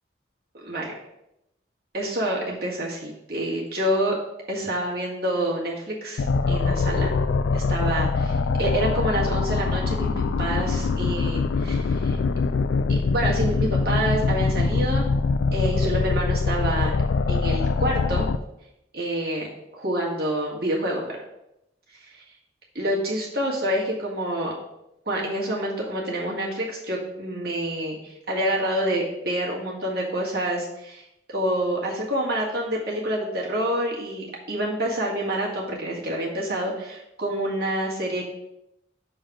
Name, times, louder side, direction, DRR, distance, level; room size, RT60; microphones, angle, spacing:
voice 1, 0.6-0.9 1.9-4.2 4.5-7.1 7.5-12.2 12.9-15.1 15.5-17.0 17.3-18.3 18.9-19.5 19.7-21.2 22.8-24.5 25.1-31.0 31.3-38.2, right 1 dB, 55° right, -3 dB, 1.8 m, -27 dB
sound 1, 6.2-18.4, left 4 dB, 85° left, 0.4 m, -23 dB
6.6 x 3.9 x 4.9 m, 0.85 s
head